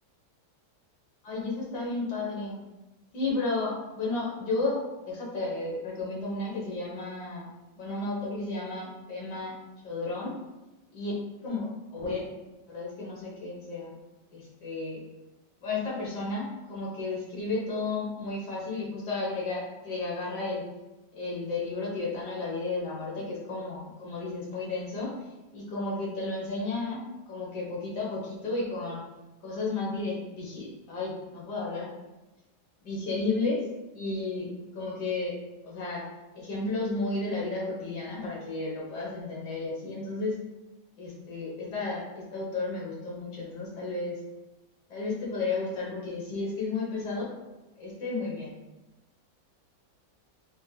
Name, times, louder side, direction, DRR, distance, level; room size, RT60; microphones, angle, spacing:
voice 1, 1.2-2.6 3.1-7.5 7.8-9.5 9.8-10.4 10.9-11.1 11.4-12.2 12.7-13.9 14.3-15.0 15.6-20.6 21.1-25.1 25.5-27.0 27.3-29.0 29.4-31.9 32.8-33.7 33.9-34.5 34.7-35.4 35.6-36.0 36.3-40.4 41.0-44.2 44.9-47.3 47.8-48.6, left 3 dB, 80° left, -4 dB, 1.6 m, -33 dB
4.2 x 2.7 x 2.2 m, 1.0 s
omnidirectional pair, 1.8 m